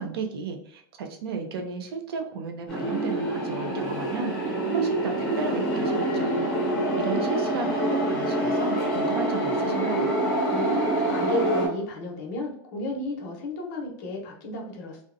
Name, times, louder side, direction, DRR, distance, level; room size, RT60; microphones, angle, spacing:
voice 1, 0.0-6.4 7.0-10.2, right 4 dB, 80° right, 4 dB, 0.5 m, -34 dB
sound 1, 2.7-11.7, right 1 dB, 10° left, 0.7 m, -26 dB
voice 2, 10.5-15.0, left 2 dB, 40° left, 0 dB, 0.7 m, -33 dB
2.6 x 2.1 x 2.5 m, 0.67 s
supercardioid pair, 175°, 13 cm